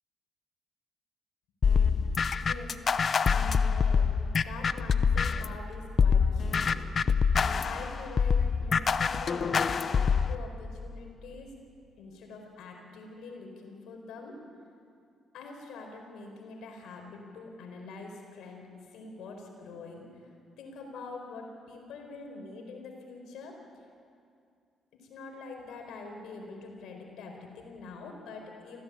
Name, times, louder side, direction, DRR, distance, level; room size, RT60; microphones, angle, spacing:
sound 1, 1.6-5.6 6.0-10.4, left 6 dB, 45° left, 0.8 m, -25 dB
voice 1, 2.3-3.0 3.3-4.1 4.4-6.8 7.6-11.5 12.0-14.4 15.3-18.6 18.9-20.2 20.6-23.6 24.9-28.8, left 3 dB, 85° left, 2 dB, 4.6 m, -44 dB
24.5 x 16.5 x 8.6 m, 2.4 s
cardioid pair, 90°, 0 cm